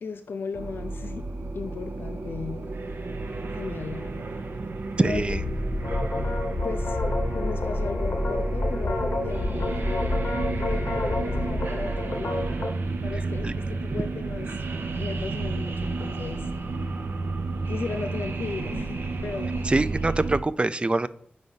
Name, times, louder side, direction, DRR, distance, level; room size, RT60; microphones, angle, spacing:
voice 1, 0.0-1.2 1.5-2.7 3.5-4.3 5.0-5.2 6.1-6.3 6.6-7.0 7.3-10.1 10.6-12.4 13.0-14.5 15.0-16.5 17.7-19.7, left 4 dB, 85° left, 8 dB, 0.4 m, -36 dB
sound 1, 0.5-20.4, right 3 dB, 85° right, 0.6 m, -32 dB
sound 2, 5.0-11.7, left 1 dB, 25° left, 0.8 m, -29 dB
voice 2, 5.0-5.4 13.4-13.5 19.7-21.1, right 2 dB, 30° right, 15 dB, 0.3 m, -24 dB
sound 3, 5.8-12.7, left 2 dB, 70° left, 0.9 m, -32 dB
4.8 x 4.1 x 5.4 m, 0.63 s
cardioid pair, 50°, 4 cm